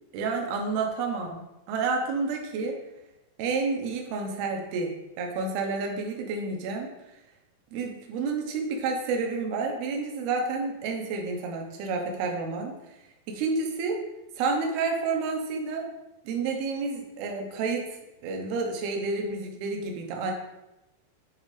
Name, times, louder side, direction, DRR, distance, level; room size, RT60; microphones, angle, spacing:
voice 1, 0.1-2.8 3.4-6.9 7.7-12.7 13.3-14.0 14.4-15.8 16.2-17.9 18.2-20.3, right 4 dB, 70° right, 2 dB, 2.5 m, -30 dB
10.0 x 4.0 x 4.9 m, 0.96 s
omnidirectional pair, 5.7 m